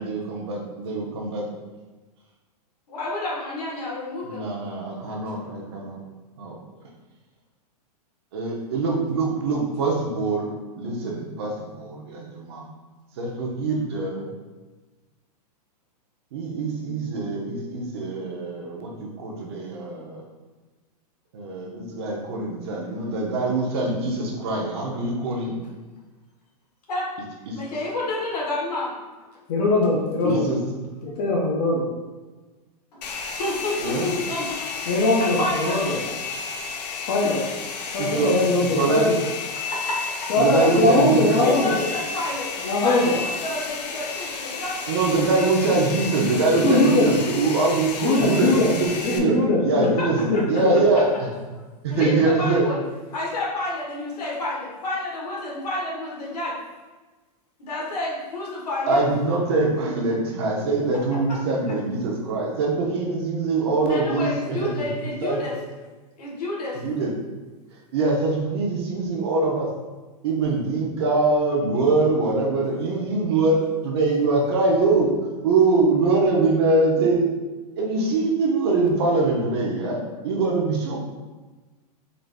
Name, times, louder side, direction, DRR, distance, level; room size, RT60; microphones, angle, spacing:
voice 1, 0.0-1.5 4.3-6.0 6.4-6.6 8.3-10.5 10.8-12.7 13.2-14.3 16.3-20.2 21.3-25.6 27.5-27.6 30.2-30.6 33.8-34.1 38.0-38.3 38.7-39.0 40.4-41.4 44.9-50.2 50.5-51.1 51.8-52.6 58.9-64.7 65.2-65.4 66.8-67.1 67.9-69.7 70.2-75.1 75.4-77.3 77.8-81.0, right 3 dB, 40° right, -1 dB, 0.6 m, -23 dB
voice 2, 2.9-4.4 26.9-27.1 27.5-28.9 30.2-30.4 32.9-33.0 33.4-34.7 35.4-35.8 37.2-37.4 39.5-40.3 40.6-40.8 41.4-42.5 42.8-44.8 50.0-50.1 50.3-50.4 51.9-52.8 53.1-56.5 57.6-59.1 63.9-65.6 66.2-66.8, left 2 dB, 70° left, -4 dB, 1.4 m, -29 dB
voice 3, 29.5-30.5 31.0-31.9 34.9-36.0 37.1-37.4 37.9-39.2 40.3-41.8 42.6-43.1 46.5-47.1 48.0-48.7 49.0-50.8, left 2 dB, 30° left, -5 dB, 0.4 m, -21 dB
Domestic sounds home sounds, 33.0-49.2, left 5 dB, 90° left, 0.5 m, -32 dB
3.9 x 2.4 x 3.4 m, 1.3 s
supercardioid pair, 175°, 21 cm